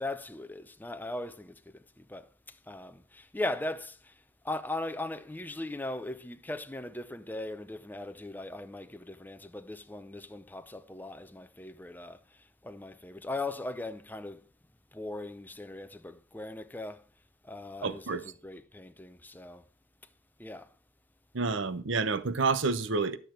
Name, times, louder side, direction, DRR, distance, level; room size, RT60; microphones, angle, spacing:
voice 1, 0.0-14.5 14.9-17.0 17.4-19.7 20.4-20.7, left 2 dB, 10° left, 0.6 m, -39 dB
voice 2, 17.8-18.2 21.3-23.2, right 4 dB, 80° right, 0.9 m, -29 dB
12.0 x 6.8 x 4.4 m
head